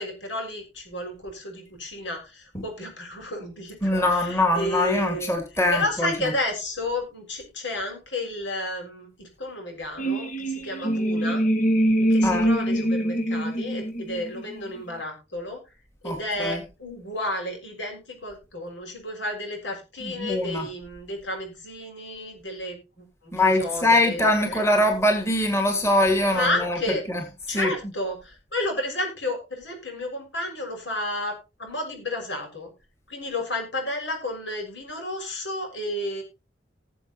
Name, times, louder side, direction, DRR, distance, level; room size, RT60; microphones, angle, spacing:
voice 1, 0.0-5.4 5.7-11.4 12.1-15.6 16.0-24.7 26.3-27.0 27.5-32.7 33.1-36.2, left 1 dB, 80° left, 2 dB, 6.6 m, -32 dB
voice 2, 3.8-6.1 12.2-12.5 16.0-16.6 20.0-20.7 23.3-26.8 27.1-27.2 27.5-27.7, left 1 dB, 15° left, 3 dB, 2.3 m, -23 dB
sound 1, 10.0-14.8, right 1 dB, 45° left, 1.5 m, -24 dB
19.5 x 7.3 x 3.1 m, 0.27 s
head